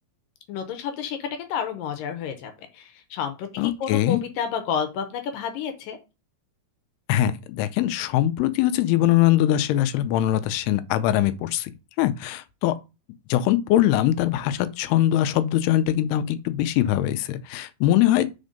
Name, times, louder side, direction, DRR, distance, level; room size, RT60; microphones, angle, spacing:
voice 1, 0.5-6.0, left 7 dB, 75° left, 2.3 m, -30 dB
voice 2, 3.6-4.2 7.1-11.7 12.0-12.8 13.3-18.3, left 13 dB, 90° left, 2.7 m, -22 dB
5.3 x 4.4 x 5.1 m
omnidirectional pair, 4.5 m